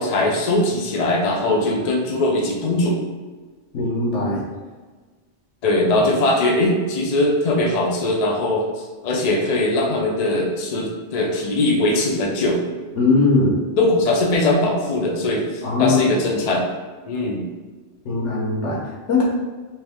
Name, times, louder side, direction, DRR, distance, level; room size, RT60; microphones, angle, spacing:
voice 1, 0.0-3.0 5.6-8.6 9.0-12.6 13.8-16.7 17.1-17.4, left 1 dB, 45° left, -1 dB, 0.6 m, -20 dB
voice 2, 3.7-4.4 12.9-13.6 15.6-16.0 18.0-19.2, left 3 dB, 75° left, -2 dB, 1.2 m, -20 dB
3.3 x 3.0 x 3.5 m, 1.3 s
omnidirectional pair, 1.2 m